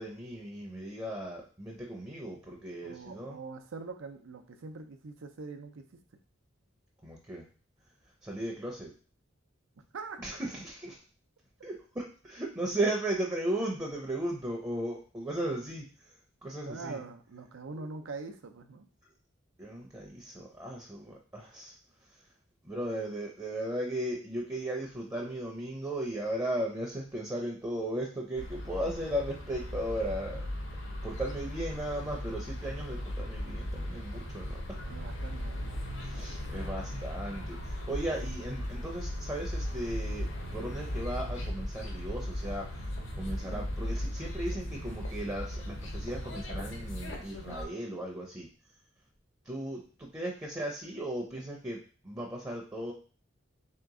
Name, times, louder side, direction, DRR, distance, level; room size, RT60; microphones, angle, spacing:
voice 1, 0.0-3.4 7.0-7.5 8.2-8.9 10.2-11.0 11.6-15.8 16.4-17.0 17.8-17.9 19.6-21.7 22.6-30.5 31.0-34.6 36.0-48.5 49.5-52.9, right 1 dB, 15° right, -1 dB, 0.6 m, -36 dB
voice 2, 2.8-6.0 9.9-10.2 16.7-18.9 34.8-35.7, right 4 dB, 90° right, 6 dB, 0.6 m, -43 dB
sound 1, 28.3-47.6, left 1 dB, 70° left, 0.8 m, -37 dB
3.4 x 2.9 x 3.6 m, 0.38 s
head